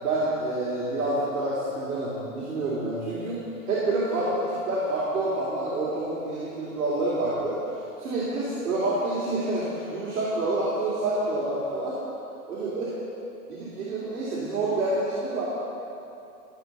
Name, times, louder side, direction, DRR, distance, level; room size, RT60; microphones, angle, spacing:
voice 1, 0.0-3.4 3.7-7.6 8.0-12.0 12.5-12.9 13.5-15.4, right 2 dB, 70° right, -8 dB, 3.0 m, -28 dB
13.5 x 5.7 x 6.6 m, 2.8 s
hypercardioid pair, 170°, 45 cm